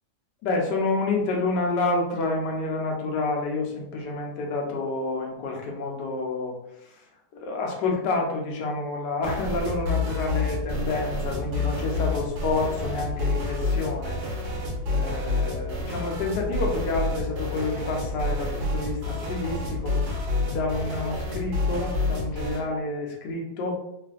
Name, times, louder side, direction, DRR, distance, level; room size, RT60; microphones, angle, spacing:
voice 1, 0.4-6.5 7.4-14.2 14.9-20.0 20.5-23.7, left 3 dB, 80° left, 0 dB, 1.3 m, -28 dB
sound 1, 9.2-22.7, left 2 dB, 80° right, 1.3 m, -28 dB
3.2 x 2.4 x 2.3 m, 0.84 s
omnidirectional pair, 1.8 m